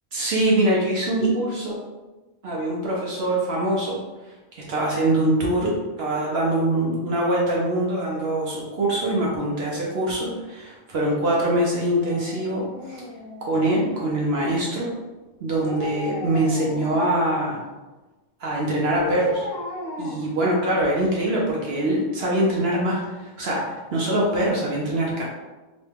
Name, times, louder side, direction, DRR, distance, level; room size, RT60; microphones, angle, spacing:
voice 1, 0.1-1.8 2.4-4.0 4.5-13.0 13.4-14.9 15.4-17.6 18.4-19.4 20.0-25.2, right 1 dB, 60° right, -3 dB, 0.7 m, -23 dB
Dog, 11.8-13.8 15.5-17.2 18.9-21.1 21.4-21.5, left 2 dB, 30° left, 0.4 m, -35 dB
3.0 x 2.2 x 3.3 m, 1.2 s
omnidirectional pair, 1.5 m